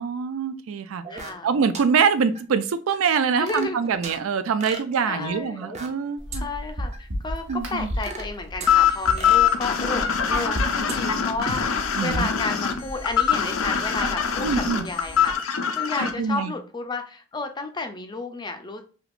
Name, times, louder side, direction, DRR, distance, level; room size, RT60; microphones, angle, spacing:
voice 1, 0.0-1.1 1.4-6.5 7.5-7.9 12.0-12.3 14.4-14.9 16.0-16.5, right 6 dB, 85° right, 12 dB, 0.4 m, -24 dB
sound 1, 1.0-1.5 1.7-1.8 2.3-2.4 2.9-4.2 4.6-6.0 6.3-6.4 6.9-7.0 7.5-8.7 9.2-10.6 10.9-11.0 11.5-11.6, right 3 dB, 35° right, 0.6 m, -37 dB
voice 2, 1.1-1.5 3.4-3.8 4.6-5.7 6.3-15.4 15.8-18.8, left 3 dB, 20° left, 7 dB, 0.4 m, -32 dB
sound 2, 6.2-15.3, equal, 60° right, 0.9 m, -35 dB
sound 3, 8.7-16.1, left 8 dB, 80° left, 0.5 m, -23 dB
3.5 x 2.8 x 2.4 m, 0.38 s
head